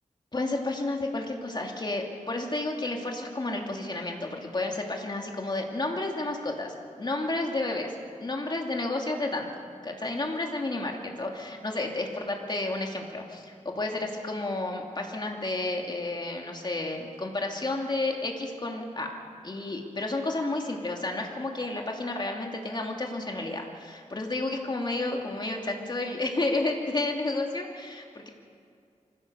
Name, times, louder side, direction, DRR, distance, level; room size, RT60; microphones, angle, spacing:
voice 1, 0.3-7.9 8.2-19.1 19.4-28.3, left 2 dB, 35° left, 1 dB, 2.7 m, -31 dB
24.5 x 16.5 x 6.9 m, 2.3 s
wide cardioid pair, 100°, 13 cm